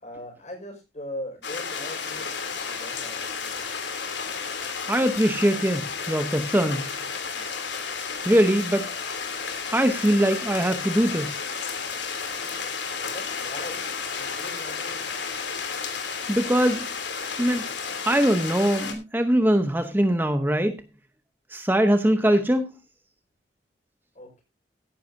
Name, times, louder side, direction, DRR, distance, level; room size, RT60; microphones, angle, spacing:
voice 1, 0.0-2.3 2.7-3.2 12.9-15.1 24.2-24.4, left 1 dB, 40° left, 5.4 m, -40 dB
sound 1, 1.4-18.9, left 5 dB, 80° left, 3.0 m, -32 dB
voice 2, 4.9-6.9 8.2-8.9 9.7-11.4 16.3-16.9 17.4-17.6 18.0-20.8 21.5-22.7, right 1 dB, 10° right, 0.8 m, -22 dB
16.0 x 10.5 x 2.7 m
head